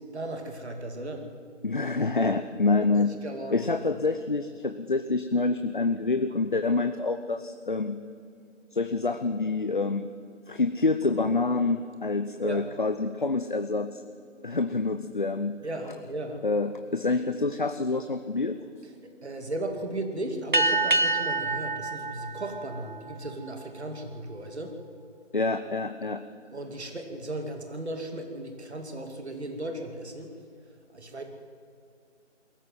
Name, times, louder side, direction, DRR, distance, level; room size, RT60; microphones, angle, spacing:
voice 1, 0.1-1.3 3.0-3.7 12.4-12.7 15.6-16.4 19.2-24.8 26.5-30.4 30.9-31.2, right 1 dB, 60° right, 5 dB, 2.7 m, -36 dB
voice 2, 1.6-3.1 3.5-8.0 8.7-10.1 10.5-14.0 14.4-15.5 16.4-18.6 25.3-26.2, left 3 dB, 40° left, 8 dB, 0.7 m, -27 dB
sound 1, 20.5-23.5, right 2 dB, 40° right, 0.5 m, -27 dB
21.5 x 14.5 x 9.3 m, 2.2 s
figure-of-eight pair, 170°, 37 cm